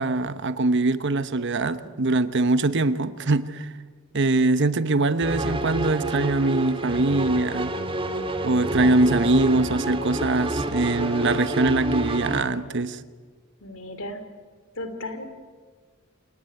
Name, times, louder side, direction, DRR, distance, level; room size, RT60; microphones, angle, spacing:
voice 1, 0.0-3.7 4.1-7.7 8.4-13.0, right 2 dB, 55° right, 13 dB, 1.0 m, -22 dB
sound 1, 5.2-12.4, right 1 dB, 25° right, 1.9 m, -28 dB
voice 2, 13.6-14.2 14.7-15.2, left 1 dB, 65° left, 9 dB, 3.2 m, -34 dB
28.0 x 18.0 x 9.5 m, 1.5 s
head